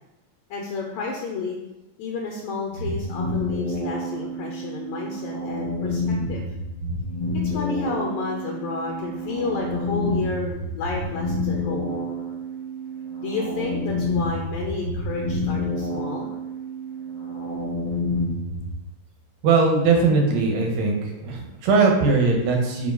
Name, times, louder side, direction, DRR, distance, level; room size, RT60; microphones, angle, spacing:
voice 1, 0.5-1.6 2.0-6.0 6.3-6.4 7.3-12.0 13.2-16.3, left 4 dB, 75° left, 0 dB, 2.0 m, -31 dB
sound 1, 2.7-18.7, left 1 dB, 35° left, 1.6 m, -29 dB
voice 2, 19.4-20.9 21.2-22.9, right 4 dB, 65° right, 1 dB, 2.2 m, -20 dB
5.3 x 5.1 x 4.7 m, 0.97 s
omnidirectional pair, 3.6 m